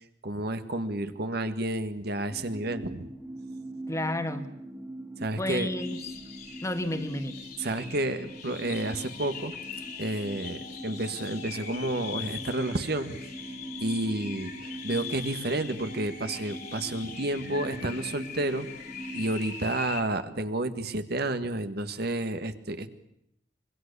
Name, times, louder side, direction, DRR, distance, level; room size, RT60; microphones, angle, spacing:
voice 1, 0.2-3.1 5.2-5.7 7.6-9.5 10.0-13.2 13.8-18.7 19.1-22.9, right 1 dB, 60° right, 9 dB, 1.7 m, -30 dB
sound 1, 2.3-19.4, right 1 dB, 10° right, 2.1 m, -42 dB
voice 2, 3.9-4.5 5.4-6.0 6.6-7.4, left 1 dB, 15° left, 8 dB, 1.7 m, -31 dB
sound 2, 5.8-20.0, left 7 dB, 60° left, 3.0 m, -42 dB
25.5 x 22.0 x 6.9 m, 0.78 s
head